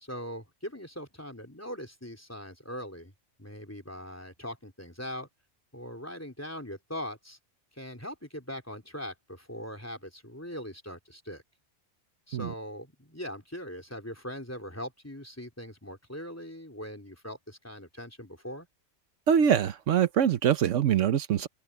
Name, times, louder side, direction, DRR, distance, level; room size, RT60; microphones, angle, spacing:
voice 1, 0.0-3.1 3.4-5.3 5.7-7.4 7.7-11.4 12.3-18.7, equal, 10° left, 3.8 m, -41 dB
voice 2, 19.3-21.5, right 8 dB, 80° right, 1.2 m, -24 dB
open air
omnidirectional pair, 1.3 m